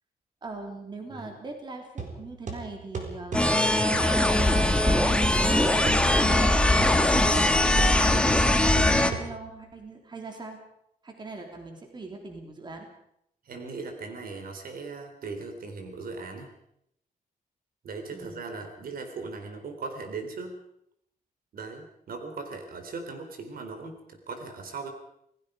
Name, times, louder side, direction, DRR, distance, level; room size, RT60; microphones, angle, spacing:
voice 1, 0.4-3.5 3.8-7.5 7.8-10.6 11.0-12.9 18.1-18.5, right 3 dB, 30° right, 3 dB, 3.3 m, -41 dB
sound 1, 2.0-9.7, right 4 dB, 50° right, 4.2 m, -38 dB
sound 2, 3.3-9.1, left 1 dB, 5° left, 1.4 m, -21 dB
voice 2, 13.5-16.5 17.8-20.6 21.5-24.9, right 4 dB, 70° right, 5 dB, 3.8 m, -38 dB
27.5 x 19.0 x 5.1 m, 0.74 s
wide cardioid pair, 175°, 16 cm